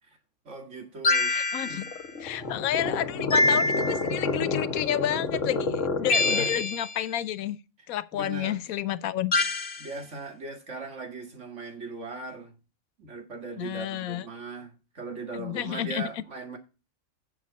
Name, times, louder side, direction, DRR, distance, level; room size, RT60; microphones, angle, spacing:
voice 1, 0.5-1.4 1.6-1.8 6.1-6.6 8.1-8.6 9.8-12.5 13.0-16.6, right 3 dB, 60° right, 2.2 m, -39 dB
sound 1, 1.0-2.0 3.3-4.2 6.1-7.0 9.3-9.9, left 2 dB, 45° left, 1.1 m, -25 dB
voice 2, 1.3-1.8 2.2-7.6 7.9-9.3 13.5-14.3 15.3-16.1, left 11 dB, 85° left, 1.1 m, -30 dB
sound 2, 1.7-6.6, left 3 dB, 65° left, 1.8 m, -30 dB
9.2 x 7.4 x 4.1 m
omnidirectional pair, 1.4 m